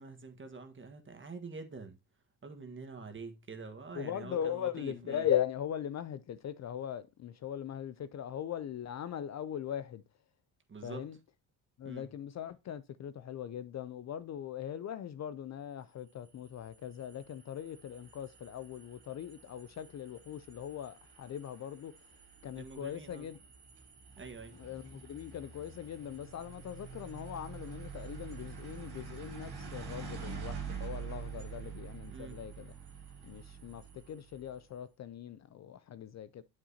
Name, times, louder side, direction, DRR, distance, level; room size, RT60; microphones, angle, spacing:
voice 1, 0.0-2.0 2.4-5.3 10.7-11.0 11.8-12.1 22.5-23.3 24.2-24.6 32.1-32.4, right 4 dB, 30° right, 1.5 m, -46 dB
voice 2, 3.9-10.0 10.8-11.2 11.8-21.9 22.4-23.4 24.5-32.7 33.2-36.4, left 9 dB, 40° left, 0.5 m, -39 dB
sound 1, 16.1-34.6, right 6 dB, 70° right, 3.8 m, -47 dB
8.4 x 7.3 x 2.8 m
cardioid pair, 85°, 41 cm